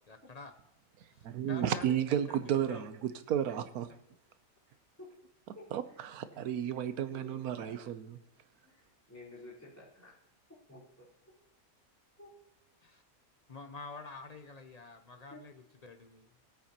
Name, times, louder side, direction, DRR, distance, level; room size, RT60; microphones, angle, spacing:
voice 1, 0.1-0.5 1.1-1.2 1.5-2.4 2.7-2.8 12.8-13.0 13.5-16.3, left 3 dB, 45° left, 0.5 m, -48 dB
voice 2, 1.2-3.9 5.7-8.2, right 9 dB, 90° right, 1.2 m, -33 dB
voice 3, 8.6-10.1 10.7-11.0 12.2-12.3 15.3-15.4, left 1 dB, 10° left, 4.1 m, -51 dB
18.0 x 8.2 x 2.9 m
omnidirectional pair, 1.5 m